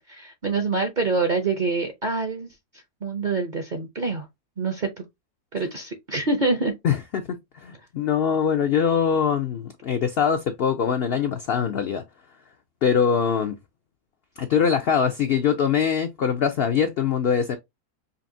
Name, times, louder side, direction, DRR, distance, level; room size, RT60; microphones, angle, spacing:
voice 1, 0.1-2.5 3.0-4.3 4.6-5.1 5.5-6.7, right 3 dB, 50° right, 0.5 m, -26 dB
voice 2, 6.8-12.0 12.8-13.6 14.4-17.6, left 7 dB, 80° left, 0.5 m, -23 dB
5.5 x 2.5 x 2.6 m
omnidirectional pair, 1.6 m